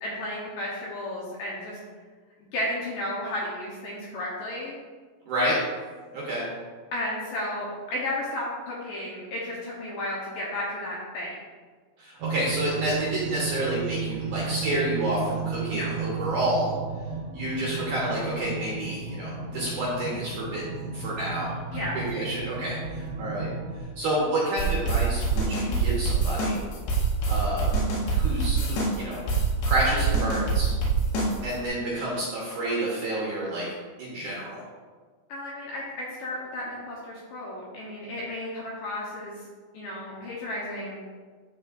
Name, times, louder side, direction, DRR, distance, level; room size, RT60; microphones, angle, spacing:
voice 1, 0.0-1.8 2.5-4.8 6.9-11.4 15.7-15.9 21.7-22.0 35.3-39.5 39.7-41.0, left 1 dB, 70° left, -5 dB, 2.3 m, -33 dB
voice 2, 5.3-5.6 6.1-6.5 12.0-16.7 17.3-21.5 21.9-23.5 24.0-26.6 27.3-27.8 28.1-29.2 29.6-30.7 31.4-33.7 34.0-34.6, right 1 dB, 65° right, -5 dB, 2.2 m, -29 dB
sound 1, 12.2-23.8, right 5 dB, 90° right, 3.0 m, -34 dB
sound 2, 24.6-31.7, right 4 dB, 85° left, 3.4 m, -25 dB
12.0 x 4.4 x 2.5 m, 1.5 s
omnidirectional pair, 4.9 m